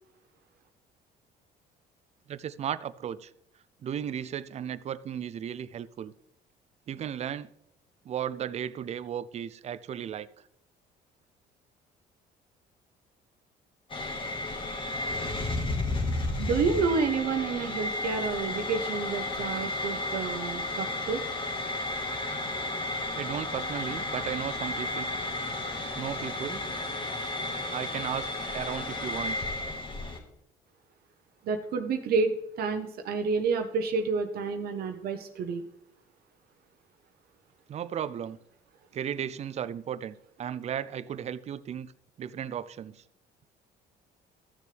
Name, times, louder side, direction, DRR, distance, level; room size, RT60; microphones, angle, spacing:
voice 1, 2.3-3.3 3.8-6.1 6.9-7.5 8.0-10.3 23.1-25.1 26.0-26.7 27.7-29.4 37.7-38.4 38.9-41.9 42.2-43.0, right 9 dB, 40° right, 0.4 m, -35 dB
sound 1, 13.9-30.2, left 2 dB, 30° left, 1.7 m, -33 dB
voice 2, 16.4-21.2 31.4-35.6, right 4 dB, 65° right, 0.9 m, -29 dB
14.0 x 6.7 x 3.4 m
cardioid pair, 110°, 17 cm